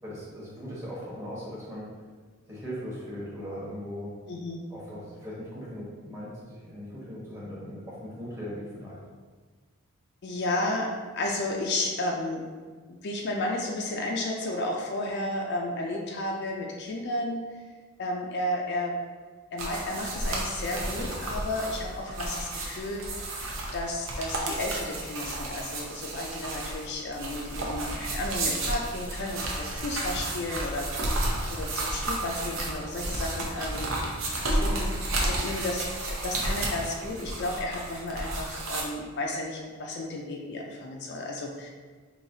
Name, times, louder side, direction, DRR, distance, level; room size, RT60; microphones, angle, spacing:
voice 1, 0.0-1.9 2.5-4.1 4.7-9.0, equal, 15° right, -7 dB, 1.0 m, -39 dB
voice 2, 4.3-4.6 10.2-12.5 12.9-17.6 18.0-19.0 19.5-23.4 23.7-31.2 31.5-33.9 34.5-34.9 35.2-41.7, left 1 dB, 50° left, 0 dB, 0.4 m, -33 dB
sound 1, 19.6-38.8, right 1 dB, 65° right, 0.7 m, -32 dB
4.8 x 2.7 x 2.6 m, 1.4 s
head